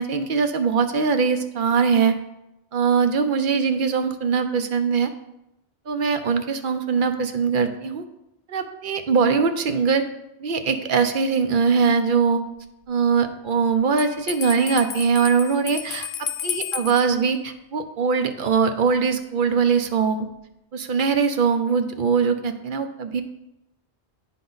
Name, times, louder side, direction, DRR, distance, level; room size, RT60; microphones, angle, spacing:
voice 1, 0.0-2.1 2.7-5.1 5.9-8.0 8.5-10.1 10.4-12.4 12.9-20.3 20.7-23.2, right 5 dB, 60° right, 8 dB, 0.6 m, -21 dB
Bell, 14.0-17.1, left 9 dB, 85° left, 0.9 m, -32 dB
10.0 x 3.8 x 3.9 m, 0.88 s
omnidirectional pair, 1.2 m